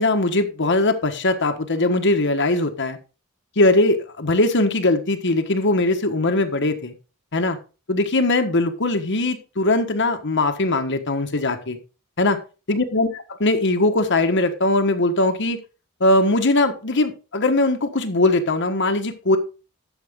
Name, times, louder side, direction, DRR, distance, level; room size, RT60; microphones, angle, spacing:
voice 1, 0.0-3.0 3.6-6.9 7.3-7.6 7.9-11.8 12.2-12.4 12.7-15.6 16.0-19.4, left 2 dB, 55° left, 6 dB, 1.4 m, -20 dB
12.0 x 7.3 x 3.7 m, 0.32 s
head